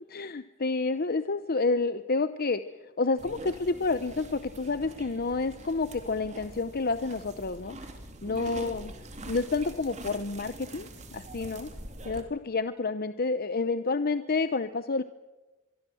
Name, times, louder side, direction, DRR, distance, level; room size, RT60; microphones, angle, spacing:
voice 1, 0.1-2.6 3.0-7.8 8.2-8.9 9.2-11.7 12.0-15.0, left 3 dB, 50° left, 12 dB, 0.8 m, -29 dB
sound 1, 3.2-12.2, right 1 dB, 35° right, 3.3 m, -44 dB
24.5 x 24.0 x 7.8 m, 1.1 s
head